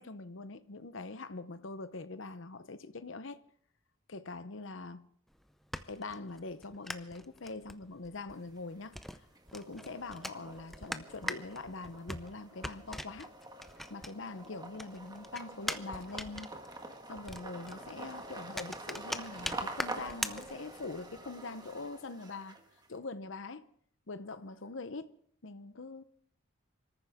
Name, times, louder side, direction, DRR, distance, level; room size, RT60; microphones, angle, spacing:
voice 1, 0.0-3.4 4.1-5.0 5.9-9.0 9.5-13.3 13.9-16.5 17.1-22.6 22.9-23.7 24.1-25.1 25.4-26.0, left 3 dB, 60° left, 0.8 m, -43 dB
sound 1, 5.3-14.5 14.7-21.0, equal, ahead, 0.5 m, -42 dB
sound 2, 8.3-9.0 9.4-22.9, right 2 dB, 20° right, 1.7 m, -47 dB
26.5 x 14.0 x 3.6 m
head